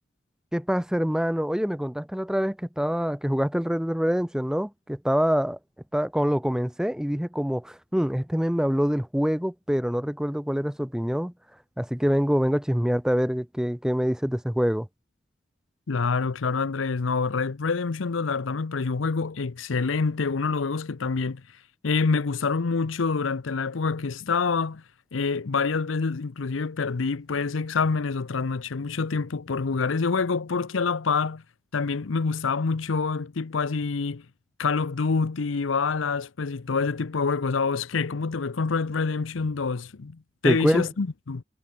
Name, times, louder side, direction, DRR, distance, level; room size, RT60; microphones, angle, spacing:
voice 1, 0.5-5.6 5.9-11.3 11.8-14.9 40.4-40.9, equal, 5° right, 0.7 m, -25 dB
voice 2, 15.9-21.4 21.8-24.8 25.1-31.4 31.7-34.3 34.6-41.4, left 4 dB, 85° left, 0.7 m, -26 dB
head